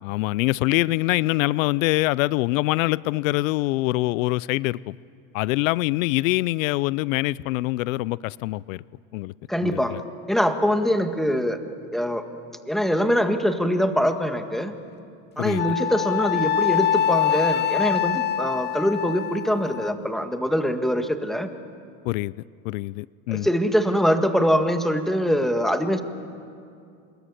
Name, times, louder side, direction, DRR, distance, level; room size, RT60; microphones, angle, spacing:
voice 1, 0.0-5.0 5.3-8.8 9.1-9.3 9.6-10.0 15.4-15.6 22.0-22.3 22.6-23.5, left 19 dB, 90° left, 0.5 m, -24 dB
voice 2, 9.5-10.0 10.3-11.6 11.9-12.2 12.7-14.7 15.4-21.5 23.3-26.0, equal, ahead, 1.8 m, -23 dB
Wind instrument woodwind instrument, 15.6-19.9, left 10 dB, 25° left, 0.6 m, -24 dB
26.0 x 21.5 x 9.8 m
supercardioid pair, 115°, 38 cm